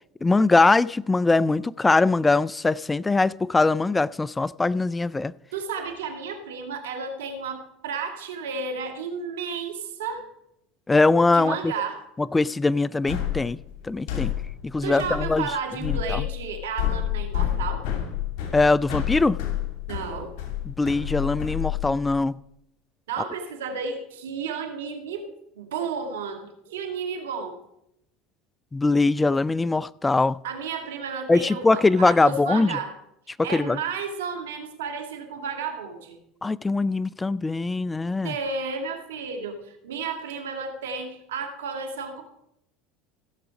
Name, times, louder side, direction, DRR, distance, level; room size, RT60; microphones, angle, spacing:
voice 1, 0.2-5.3 10.9-11.7 12.2-13.6 13.8-14.3 14.6-15.4 15.8-16.2 18.5-19.4 20.7-22.4 28.7-30.4 31.3-32.8 33.4-33.8 36.4-38.3, left 3 dB, 15° left, 0.3 m, -22 dB
voice 2, 5.5-10.3 11.3-12.0 14.1-14.2 14.8-17.9 19.9-20.3 23.1-27.6 30.4-32.9 33.4-36.2 38.2-42.2, right 5 dB, 85° right, 1.7 m, -32 dB
sound 1, 13.1-22.2, left 12 dB, 70° left, 2.5 m, -29 dB
16.0 x 6.9 x 5.0 m
hypercardioid pair, 85°, 0 cm